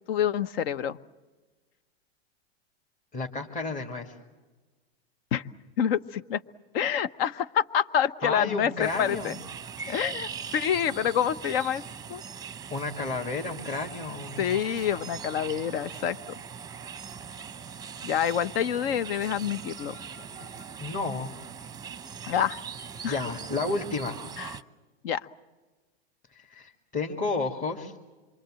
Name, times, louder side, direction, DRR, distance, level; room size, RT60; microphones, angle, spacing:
voice 1, 0.1-1.0 5.3-5.4 5.8-6.4 6.7-9.3 9.9-11.8 12.1-12.2 14.4-16.4 18.0-20.0 22.3-22.6 23.0-23.2 24.4-24.6 25.0-25.2, left 9 dB, 65° left, 15 dB, 1.1 m, -27 dB
voice 2, 3.1-4.1 8.2-9.3 12.7-14.6 20.8-21.3 23.1-24.2 26.3-27.9, left 3 dB, 25° left, -1 dB, 2.2 m, -31 dB
sound 1, 8.8-24.6, right 6 dB, 10° right, 0.8 m, -41 dB
27.0 x 24.0 x 7.6 m, 1.3 s
hypercardioid pair, 125°, 32 cm